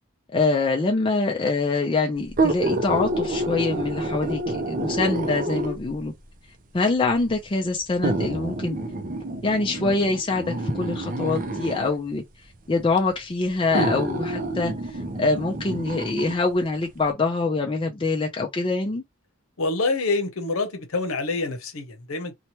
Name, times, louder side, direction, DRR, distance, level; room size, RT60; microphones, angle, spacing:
voice 1, 0.3-6.1 6.7-8.8 9.4-12.2 12.7-14.7 15.2-19.0, left 3 dB, 25° left, 0.4 m, -24 dB
sound 1, 2.3-6.0 6.9-7.0 8.0-12.0 13.0-13.1 13.7-16.4 16.8-16.9, right 2 dB, 40° right, 0.5 m, -28 dB
voice 2, 19.6-22.4, left 3 dB, 90° left, 0.7 m, -26 dB
2.8 x 2.2 x 2.9 m
head